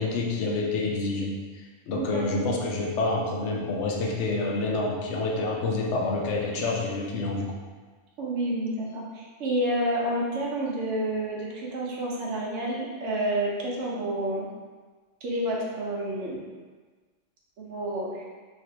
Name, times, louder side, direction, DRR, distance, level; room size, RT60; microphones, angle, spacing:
voice 1, 0.0-7.5, left 3 dB, 75° left, -1 dB, 0.9 m, -28 dB
voice 2, 1.9-2.3 8.2-14.4 15.2-16.4 17.6-18.2, right 1 dB, 70° right, -5 dB, 1.0 m, -29 dB
3.2 x 2.9 x 2.7 m, 1.4 s
omnidirectional pair, 1.2 m